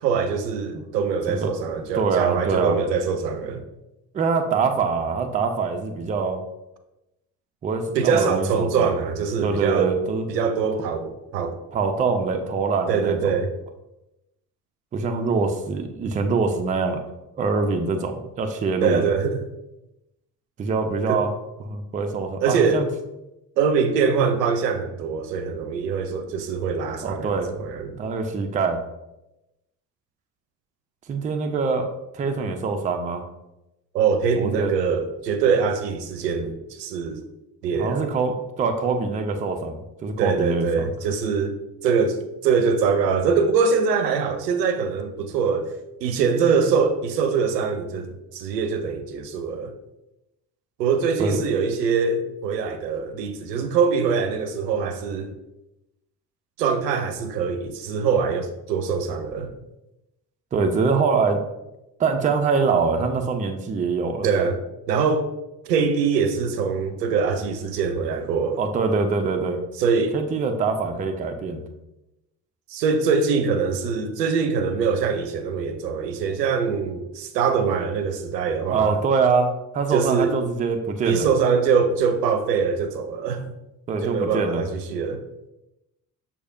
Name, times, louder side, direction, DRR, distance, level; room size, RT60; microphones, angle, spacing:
voice 1, 0.0-3.6 7.9-9.9 10.3-11.6 12.9-13.5 18.8-19.4 21.1-21.2 22.4-22.8 23.6-27.9 33.9-37.2 37.6-38.1 40.2-41.6 41.8-45.7 46.0-49.7 50.8-55.3 56.6-59.5 64.2-64.6 64.9-65.3 65.7-68.6 69.8-70.1 72.7-79.0 79.9-80.3 81.0-83.5 84.0-85.2, right 5 dB, 80° right, 0.6 m, -23 dB
voice 2, 1.9-2.8 4.1-6.4 7.6-8.9 9.4-10.3 11.7-13.3 14.9-17.0 17.4-19.2 20.6-22.9 27.0-28.8 31.1-33.2 34.4-34.7 37.7-40.9 51.2-51.6 60.5-61.4 62.0-64.3 68.6-69.6 70.1-71.6 78.7-81.3 83.9-84.7, right 4 dB, 15° right, 0.4 m, -24 dB
6.2 x 2.7 x 2.5 m
figure-of-eight pair, 50°, 48 cm